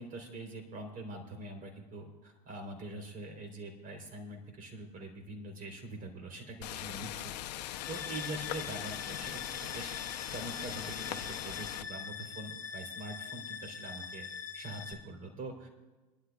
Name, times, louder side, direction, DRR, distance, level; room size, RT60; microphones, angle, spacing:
voice 1, 0.0-14.3 14.5-15.7, right 2 dB, 40° right, 4 dB, 3.6 m, -44 dB
sound 1, 6.6-11.8, left 14 dB, 70° left, 0.7 m, -40 dB
sound 2, 7.7-14.9, left 6 dB, 10° left, 3.0 m, -43 dB
23.5 x 12.0 x 2.4 m, 1.2 s
hypercardioid pair, 85°, 21 cm